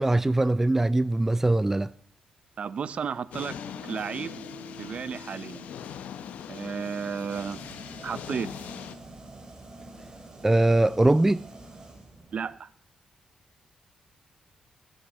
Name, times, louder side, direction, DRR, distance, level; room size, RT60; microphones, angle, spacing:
voice 1, 0.0-1.9 10.4-11.4, right 2 dB, 15° right, 0.4 m, -22 dB
voice 2, 2.6-4.4 4.8-5.7 6.5-7.6 8.0-8.5 12.3-12.7, right 6 dB, 55° right, 0.7 m, -33 dB
sound 1, 3.3-9.0, left 9 dB, 90° left, 0.8 m, -41 dB
Guitar, 3.5-7.5, left 1 dB, 75° left, 2.9 m, -48 dB
sound 2, 7.3-12.6, right 2 dB, 30° right, 2.9 m, -47 dB
15.0 x 7.9 x 7.4 m
cardioid pair, 85°, 2 cm